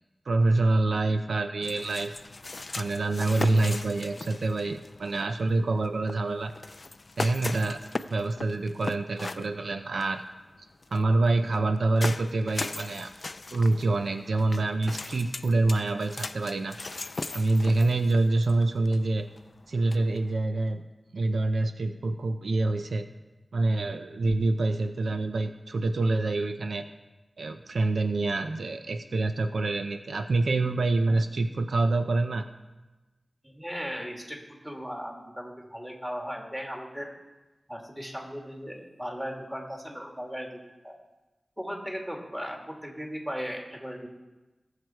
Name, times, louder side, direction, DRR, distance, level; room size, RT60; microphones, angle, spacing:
voice 1, 0.3-2.1 2.8-6.5 7.2-7.8 8.1-10.2 10.9-13.1 13.5-16.8 17.3-19.3 19.7-20.8 21.1-23.1 23.5-26.9 27.4-32.5, right 2 dB, 90° right, 8 dB, 0.6 m, -26 dB
sound 1, 1.6-20.3, left 3 dB, 55° left, 0.4 m, -39 dB
voice 2, 33.5-34.4 34.6-37.1 37.7-40.9 41.6-44.1, equal, 10° right, 0 dB, 2.6 m, -37 dB
18.5 x 6.7 x 4.6 m, 1.1 s
cardioid pair, 50°, 0 cm